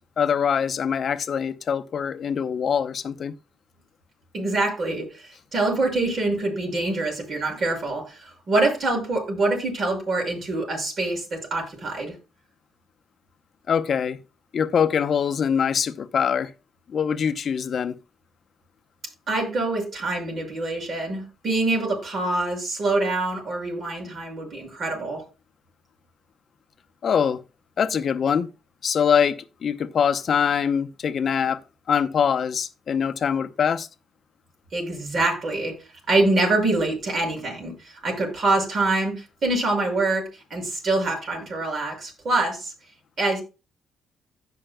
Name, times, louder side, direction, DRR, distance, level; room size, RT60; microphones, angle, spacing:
voice 1, 0.0-3.3 13.7-14.2 14.5-16.5 16.9-17.9 27.0-27.4 27.8-28.5 28.8-31.6 31.9-33.9, left 7 dB, 55° left, 0.7 m, -23 dB
voice 2, 4.3-12.1 19.3-25.2 34.7-35.7 36.1-42.7 43.2-43.4, right 2 dB, 50° right, 5.6 m, -25 dB
16.0 x 5.8 x 2.2 m
cardioid pair, 90°, 0 cm